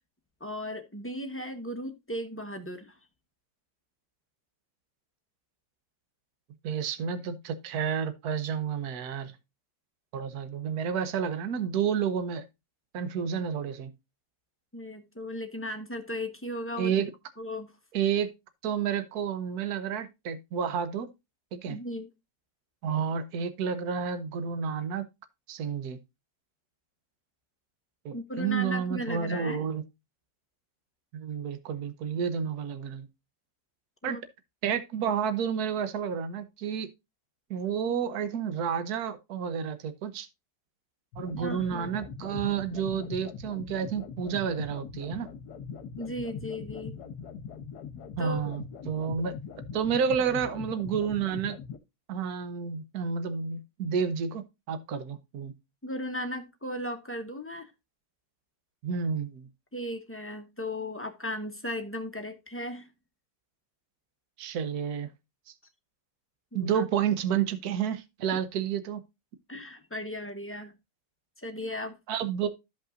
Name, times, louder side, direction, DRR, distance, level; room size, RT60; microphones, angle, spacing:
voice 1, 0.4-2.9 14.7-16.9 17.4-17.7 21.7-22.1 28.1-29.6 34.0-34.2 41.3-42.0 46.0-47.0 48.2-48.5 55.8-57.7 59.7-62.9 66.5-66.8 69.5-70.7 71.4-72.0, left 1 dB, 10° left, 0.7 m, -36 dB
voice 2, 6.6-9.3 10.1-12.4 12.9-13.9 16.8-17.1 17.9-18.3 18.6-21.1 21.5-21.8 22.8-25.1 25.5-26.0 28.0-29.8 31.1-33.0 34.0-34.2 34.6-36.9 37.5-40.3 41.2-45.3 48.2-49.3 49.7-51.6 52.1-55.5 58.8-59.5 64.4-65.1 66.5-69.0 72.1-72.5, right 7 dB, 60° right, 1.4 m, -30 dB
sound 1, 41.1-51.8, left 6 dB, 65° left, 1.4 m, -41 dB
14.0 x 5.3 x 2.5 m
omnidirectional pair, 1.9 m